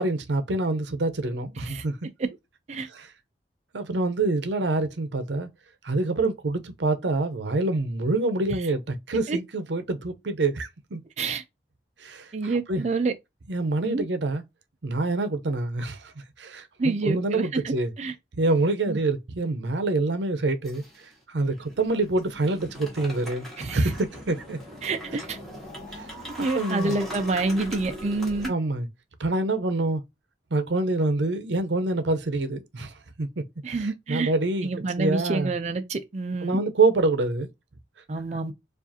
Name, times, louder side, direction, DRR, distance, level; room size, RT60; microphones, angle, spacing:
voice 1, 0.0-2.0 2.9-3.1 3.7-5.5 5.8-11.0 12.0-12.8 13.5-14.4 14.8-16.1 16.4-17.9 18.4-20.8 21.3-23.5 23.7-24.6 25.9-26.0 26.5-27.0 28.5-28.9 29.2-30.0 30.5-33.4 33.8-34.7 35.0-35.5 36.4-37.5, right 2 dB, 85° right, 0.7 m, -26 dB
voice 2, 12.3-13.1 13.8-14.1 16.8-18.1 18.9-19.0 23.6-23.8 24.8-25.4 26.4-28.5 33.6-34.3 34.6-36.6 38.1-38.5, right 3 dB, 40° right, 0.4 m, -28 dB
sound 1, 20.6-21.1 21.5-28.5, equal, ahead, 1.5 m, -40 dB
4.7 x 2.5 x 2.7 m
head